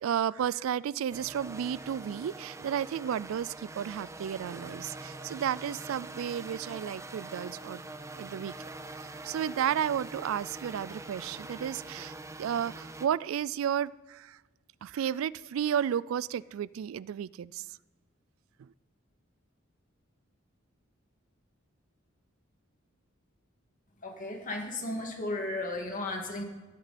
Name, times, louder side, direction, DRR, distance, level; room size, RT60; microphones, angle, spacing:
voice 1, 0.0-7.8 8.2-8.5 9.2-14.4 14.8-17.7 18.6-18.7, right 9 dB, 85° right, 20 dB, 0.3 m, -32 dB
sound 1, 1.1-13.1, right 2 dB, 15° right, 0.7 m, -44 dB
voice 2, 24.0-26.4, left 2 dB, 40° left, 2 dB, 2.3 m, -34 dB
14.0 x 13.0 x 4.3 m, 1.2 s
head